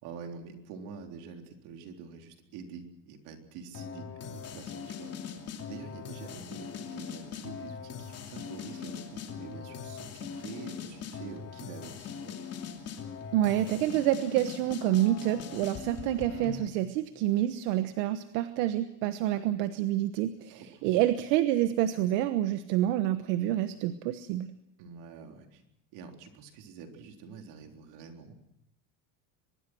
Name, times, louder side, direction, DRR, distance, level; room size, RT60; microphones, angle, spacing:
voice 1, 0.0-5.1 5.7-12.3 20.5-21.1 24.8-25.6 25.9-28.3, right 6 dB, 55° right, 4 dB, 3.8 m, -46 dB
sound 1, 3.7-16.7, left 7 dB, 30° left, 2.9 m, -41 dB
voice 2, 13.3-24.5, right 13 dB, 75° right, 10 dB, 1.3 m, -28 dB
24.0 x 21.5 x 6.2 m, 0.86 s
cardioid pair, 175°, 48 cm